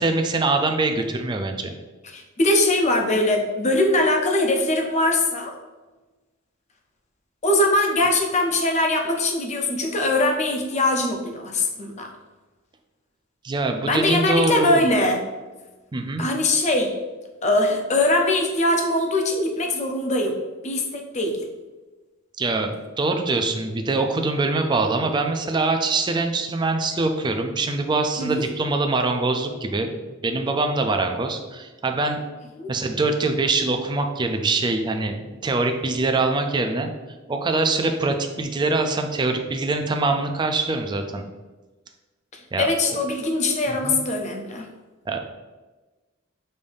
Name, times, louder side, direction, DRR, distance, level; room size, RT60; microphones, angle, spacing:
voice 1, 0.0-1.7 13.4-14.9 15.9-16.3 22.4-29.9 30.2-32.2 32.7-36.9 37.3-41.3 42.5-42.7 43.7-44.0 45.1-45.2, right 3 dB, 20° right, 5 dB, 0.4 m, -23 dB
voice 2, 2.0-5.5 7.4-12.1 13.9-15.2 16.2-16.9 17.4-20.3 20.6-21.4 28.2-28.3 32.6-32.7 42.3-44.6, left 1 dB, 35° left, 3 dB, 0.6 m, -22 dB
5.4 x 2.6 x 3.4 m, 1.2 s
head